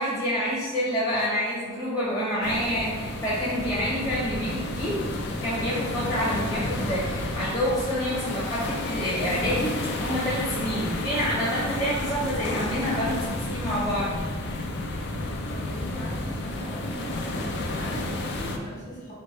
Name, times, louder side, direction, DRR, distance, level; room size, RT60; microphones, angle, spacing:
voice 1, 0.0-5.1 5.4-14.2, equal, 20° left, -9 dB, 0.8 m, -28 dB
sound 1, 2.4-18.6, left 2 dB, 60° left, 0.5 m, -31 dB
voice 2, 15.5-19.1, equal, 40° left, -5 dB, 1.4 m, -40 dB
4.1 x 3.4 x 3.2 m, 1.5 s
head